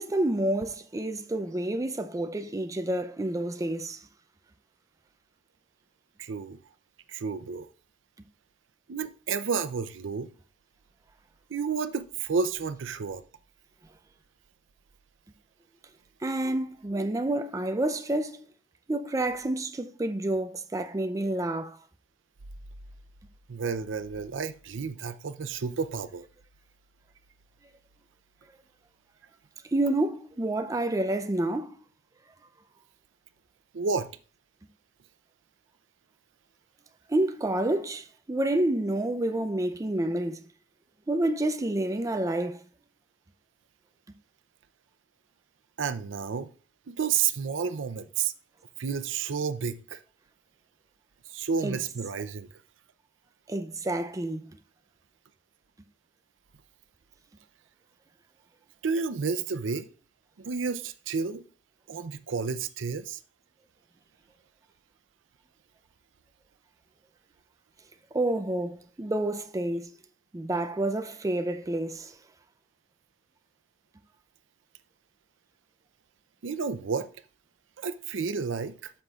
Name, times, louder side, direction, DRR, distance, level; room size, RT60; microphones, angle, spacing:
voice 1, 0.0-4.0 16.2-18.4 18.9-21.8 29.7-31.8 37.1-40.5 41.1-42.6 51.6-51.8 53.5-54.5 68.1-70.0 70.3-72.1, right 1 dB, 20° right, 0.4 m, -29 dB
voice 2, 6.2-6.6 7.1-7.7 8.9-10.3 11.5-13.2 23.5-26.2 33.7-34.1 45.8-46.5 46.9-48.3 48.8-50.0 51.3-52.5 58.8-59.9 60.4-61.4 61.9-63.2 76.4-77.1 77.8-78.9, right 5 dB, 90° right, 0.5 m, -31 dB
13.0 x 5.7 x 2.4 m
head